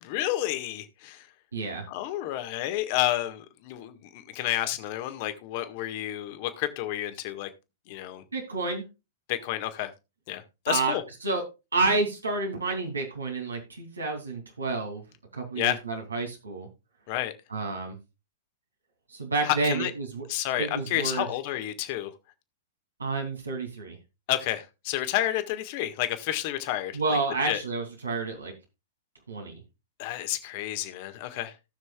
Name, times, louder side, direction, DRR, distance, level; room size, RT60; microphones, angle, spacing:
voice 1, 0.0-1.3 1.9-7.5 7.9-8.2 9.3-9.9 10.3-11.0 15.5-15.8 17.1-17.3 19.4-19.9 20.3-22.1 24.3-27.2 27.5-27.6 30.0-31.5, left 14 dB, 50° left, 1.7 m, -30 dB
voice 2, 1.5-1.9 8.3-8.8 10.7-10.9 11.2-11.4 11.7-15.0 15.3-16.7 17.5-18.0 19.1-20.2 20.6-21.3 23.0-24.0 26.9-28.5 29.3-29.6, right 3 dB, 90° right, 2.9 m, -29 dB
18.0 x 6.3 x 2.4 m
hypercardioid pair, 105°, 0 cm